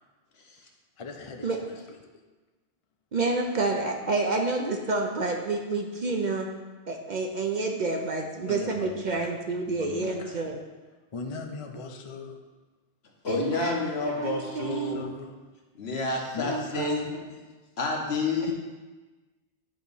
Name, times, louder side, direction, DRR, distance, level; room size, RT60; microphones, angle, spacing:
voice 1, 1.0-1.8 8.0-8.1 8.5-9.2 9.8-10.5 11.1-12.4 14.7-15.4 16.3-16.9 17.3-17.4, left 4 dB, 40° left, 3 dB, 0.5 m, -39 dB
voice 2, 3.1-6.5 6.9-10.6 13.3-15.0 16.4-17.0, right 3 dB, 50° right, 2 dB, 0.6 m, -29 dB
voice 3, 13.2-15.1 15.7-17.1 17.8-18.5, left 3 dB, 70° left, 1 dB, 1.2 m, -29 dB
8.9 x 3.0 x 5.3 m, 1.3 s
omnidirectional pair, 1.1 m